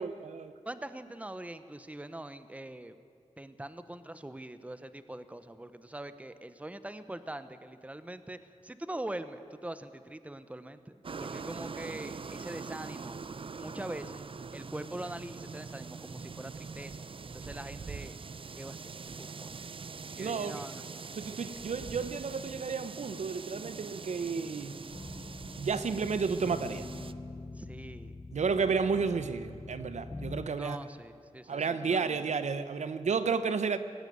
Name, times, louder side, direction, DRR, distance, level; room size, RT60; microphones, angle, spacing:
voice 1, 0.0-0.5 20.2-20.6 21.2-24.8 25.6-26.9 28.3-30.8 31.5-33.8, right 5 dB, 85° right, 12 dB, 0.9 m, -32 dB
voice 2, 0.7-3.0 3.4-8.4 8.6-13.2 13.6-14.2 14.5-17.0 17.3-18.2 18.6-18.9 19.2-19.5 20.2-20.8 27.6-28.1 28.7-28.9 30.6-32.2, right 1 dB, 10° right, 12 dB, 0.9 m, -43 dB
sound 1, 11.0-27.1, right 5 dB, 50° right, 0.6 m, -43 dB
sound 2, 24.9-30.4, left 2 dB, 20° left, 0.9 m, -44 dB
19.0 x 16.0 x 9.4 m, 2.4 s
wide cardioid pair, 90°, 12 cm